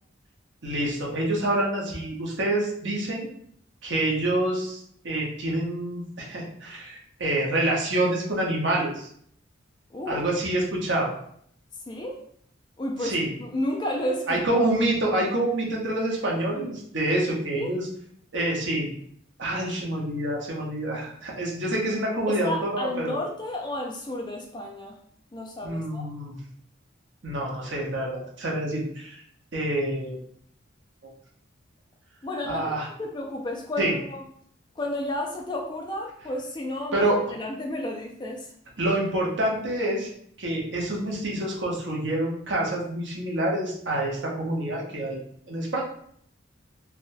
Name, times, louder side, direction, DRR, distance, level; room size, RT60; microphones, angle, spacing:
voice 1, 0.6-3.3 3.8-9.1 10.1-11.1 13.0-13.3 14.3-17.9 18.3-18.9 19.4-23.1 25.6-26.4 27.2-29.2 29.5-30.2 31.0-31.1 32.4-32.9 33.8-33.9 36.9-37.2 38.8-40.1 40.4-45.2 45.5-45.8, right 1 dB, 65° right, -2 dB, 0.9 m, -27 dB
voice 2, 9.9-10.2 11.9-12.2 12.8-14.6 17.5-17.8 22.3-25.0 25.3-26.1 32.2-32.6 33.0-34.2 34.8-38.5, left 1 dB, 25° left, 1 dB, 0.3 m, -32 dB
3.4 x 2.2 x 2.6 m, 0.64 s
head